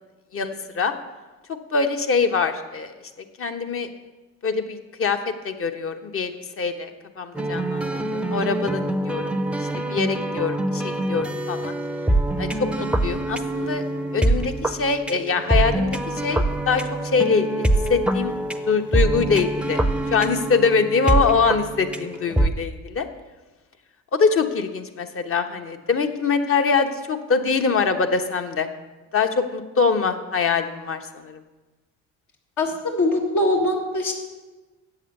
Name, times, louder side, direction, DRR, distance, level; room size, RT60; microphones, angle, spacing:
voice 1, 0.3-0.9 1.7-2.9 3.4-3.9 4.4-5.2 5.4-6.3 6.6-6.9 7.2-7.9 8.1-9.4 9.9-11.8 12.4-13.8 14.1-18.3 18.6-23.1 24.1-28.7 29.1-31.4, left 5 dB, 45° left, 7 dB, 1.2 m, -23 dB
sound 1, 7.3-22.5, right 1 dB, 5° right, 0.6 m, -24 dB
voice 2, 32.6-34.1, left 1 dB, 65° left, 0 dB, 1.9 m, -22 dB
7.9 x 7.3 x 8.3 m, 1.2 s
supercardioid pair, 85°, 31 cm